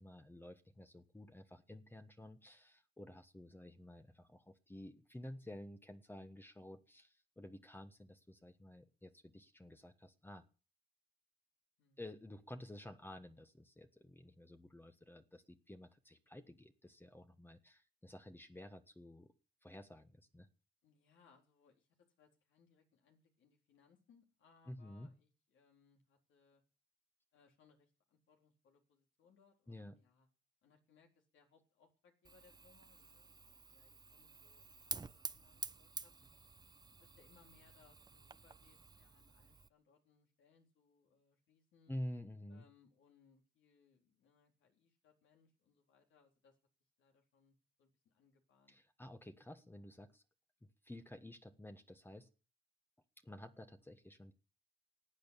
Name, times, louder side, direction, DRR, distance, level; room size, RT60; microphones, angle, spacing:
voice 1, 0.0-10.4 12.0-19.3 19.6-20.5 24.7-25.1 29.7-29.9 41.9-42.6 48.7-50.2 50.8-52.3 53.2-54.3, left 1 dB, 10° left, 7 dB, 1.4 m, -51 dB
voice 2, 20.8-21.9 22.2-26.6 27.3-30.3 30.6-36.1 36.8-41.9 42.5-46.6 47.0-48.8, left 6 dB, 75° left, 2 dB, 4.0 m, -71 dB
Fire, 32.2-39.7, right 4 dB, 20° right, 0.7 m, -50 dB
14.5 x 8.9 x 8.4 m, 0.37 s
cardioid pair, 90°, 20 cm